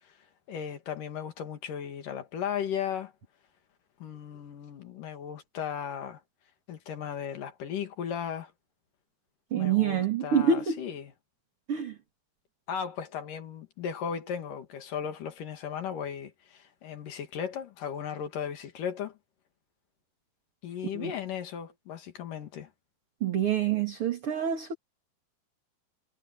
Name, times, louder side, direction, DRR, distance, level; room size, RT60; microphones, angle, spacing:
voice 1, 0.5-3.1 4.0-6.2 6.7-8.5 9.5-11.1 12.7-19.1 20.6-22.7, left 8 dB, 60° left, 3.4 m, -36 dB
voice 2, 9.5-10.8 11.7-11.9 20.9-21.1 23.2-24.7, right 7 dB, 40° right, 2.6 m, -26 dB
omnidirectional pair, 4.7 m